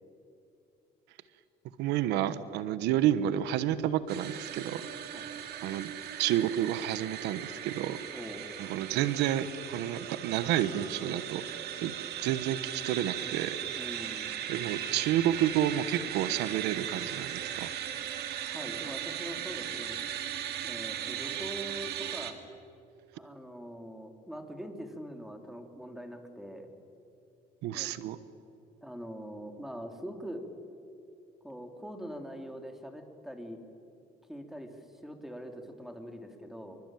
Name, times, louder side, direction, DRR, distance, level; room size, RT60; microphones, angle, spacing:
voice 1, 1.8-4.8 5.2-5.3 5.6-5.9 6.2-8.0 8.6-13.6 14.5-17.7 27.6-28.2, right 11 dB, 90° right, 14 dB, 1.1 m, -30 dB
sound 1, 4.1-22.3, right 10 dB, 75° right, 2.5 m, -38 dB
voice 2, 8.1-8.5 13.7-14.4 18.5-20.0 20.6-22.4 23.1-26.7 27.7-27.9 28.8-30.4 31.4-33.6 34.3-34.8 35.0-36.8, equal, ahead, 5 dB, 3.5 m, -43 dB
26.5 x 24.0 x 9.2 m, 2.7 s
cardioid pair, 110°, 17 cm